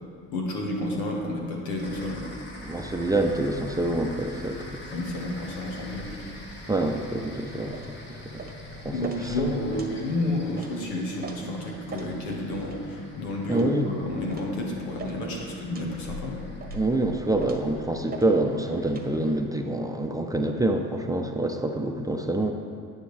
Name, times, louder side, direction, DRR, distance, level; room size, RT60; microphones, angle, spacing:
voice 1, 0.3-2.2 4.9-6.3 8.9-16.4, left 1 dB, 85° left, -1 dB, 1.8 m, -30 dB
sound 1, 1.8-19.4, left 1 dB, 30° left, 1.9 m, -44 dB
voice 2, 2.6-4.7 6.7-7.8 8.1-8.2 8.8-8.9 9.2-9.4 13.5-13.9 16.7-22.5, right 1 dB, 10° right, 3 dB, 0.7 m, -26 dB
sound 2, 7.7-7.9 8.4-8.6 9.0-9.2 9.7-9.9 10.6-10.7 11.2-11.4 11.9-12.1 12.6-12.8 13.5-13.7 14.3-14.5 15.0-15.2 15.7-15.9 16.6-16.9 17.4-17.7 18.1-18.3 18.9-19.1, right 4 dB, 25° right, 1.2 m, -40 dB
10.0 x 9.1 x 3.4 m, 2.3 s
supercardioid pair, 80°, 36 cm